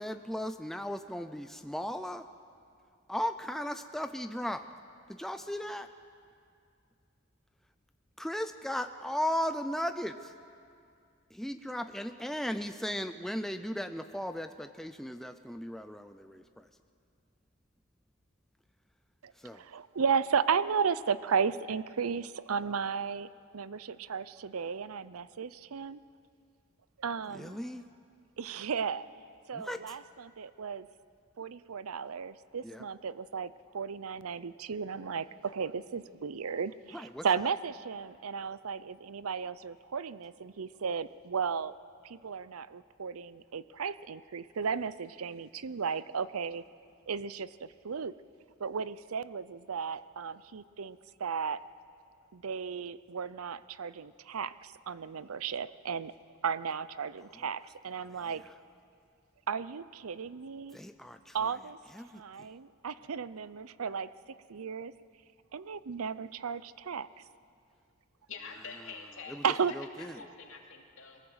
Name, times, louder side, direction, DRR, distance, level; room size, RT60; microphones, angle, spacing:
voice 1, 0.0-2.2 3.1-4.7 5.1-5.9 8.2-10.3 11.3-16.7 19.4-19.6 27.3-27.8 29.5-30.0 32.6-32.8 36.9-37.2 60.7-61.5 61.9-62.2 69.3-69.4 69.7-70.2, equal, ahead, 8 dB, 0.5 m, -36 dB
voice 2, 19.2-23.3 23.5-26.0 27.0-27.6 28.4-29.1 29.5-30.9 31.4-41.7 42.0-46.6 47.1-48.1 48.6-51.6 52.3-56.1 56.4-58.4 59.5-60.8 61.3-61.8 62.1-64.1 64.5-64.9 65.5-67.1 69.4-69.7, right 6 dB, 85° right, 16 dB, 0.6 m, -34 dB
voice 3, 68.3-69.4 70.0-71.2, left 5 dB, 65° left, 1 dB, 2.7 m, -46 dB
23.0 x 18.0 x 8.0 m, 2.3 s
head